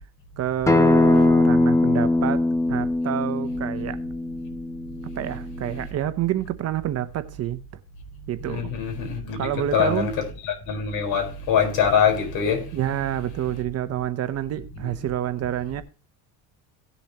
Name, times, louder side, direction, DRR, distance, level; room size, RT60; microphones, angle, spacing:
voice 1, 0.4-4.0 5.2-7.6 8.3-8.7 9.4-10.1 12.7-15.8, right 11 dB, 40° right, 0.9 m, -28 dB
Acoustic guitar, 0.7-5.9, left 2 dB, 10° left, 0.8 m, -21 dB
voice 2, 8.4-12.6 14.8-14.9, left 7 dB, 65° left, 4.7 m, -24 dB
17.5 x 7.0 x 3.0 m
cardioid pair, 150°, 39 cm